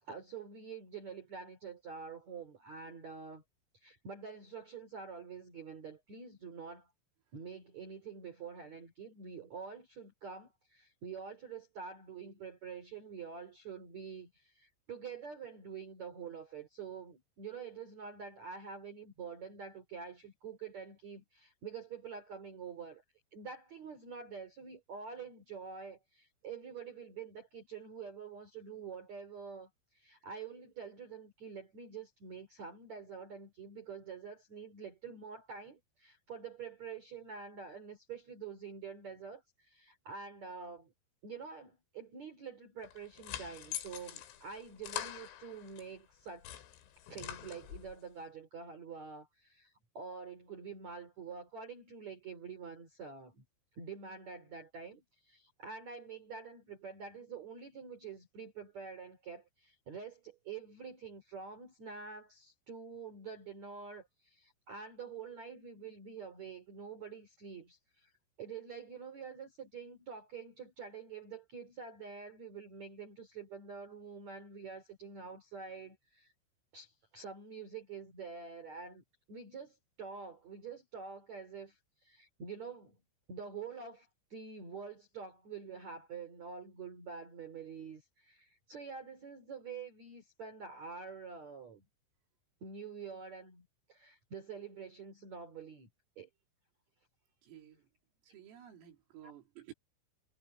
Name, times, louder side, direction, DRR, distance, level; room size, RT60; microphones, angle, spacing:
voice 1, 0.0-3.4 3.7-6.9 7.3-23.0 23.3-40.9 41.2-46.5 47.1-53.4 53.8-68.1 68.4-76.3 76.7-83.0 83.3-91.8 92.6-95.9 96.2-96.3 99.2-99.3, right 6 dB, 40° right, 3.9 m, -47 dB
sound 1, 42.8-45.9 46.3-48.0, left 12 dB, 85° left, 5.0 m, -44 dB
voice 2, 97.4-97.9 98.2-99.7, right 11 dB, 75° right, 5.9 m, -54 dB
omnidirectional pair, 5.9 m